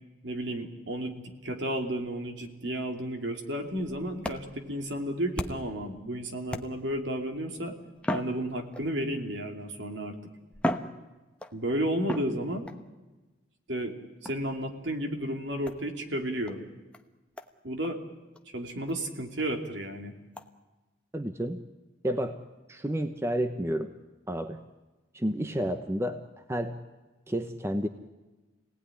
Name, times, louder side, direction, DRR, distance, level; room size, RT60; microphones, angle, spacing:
voice 1, 0.2-7.8 8.1-10.2 11.5-12.7 13.7-13.9 14.2-16.7 17.6-18.0 18.5-20.2, right 1 dB, 60° right, 4 dB, 2.9 m, -32 dB
sound 1, 3.7-5.8 6.5-7.1 8.0-9.1 9.9-10.0 10.5-11.6 12.1-12.8 14.2-14.6 15.7-15.8 16.5-16.6 16.9-17.0 17.4-17.5 17.8-17.9 18.4-18.5 18.9-19.0 19.4-19.5 20.4-20.5, equal, 5° left, 1.0 m, -36 dB
voice 2, 21.1-21.6 22.0-22.4 22.7-23.9 24.3-24.6 25.1-26.2 26.5-26.8 27.3-27.9, equal, 15° right, 8 dB, 0.9 m, -30 dB
27.5 x 18.0 x 10.0 m, 1.2 s
head